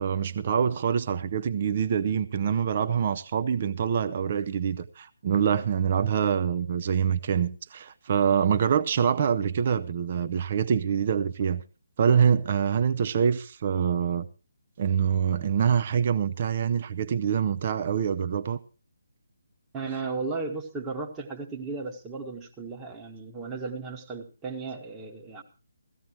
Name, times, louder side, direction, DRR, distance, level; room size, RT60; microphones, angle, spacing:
voice 1, 0.0-11.6 12.0-14.3 14.8-18.6, right 7 dB, 35° right, 0.6 m, -25 dB
voice 2, 19.7-25.4, right 4 dB, 15° right, 1.5 m, -35 dB
17.0 x 14.5 x 3.1 m
figure-of-eight pair, 145°, 0 cm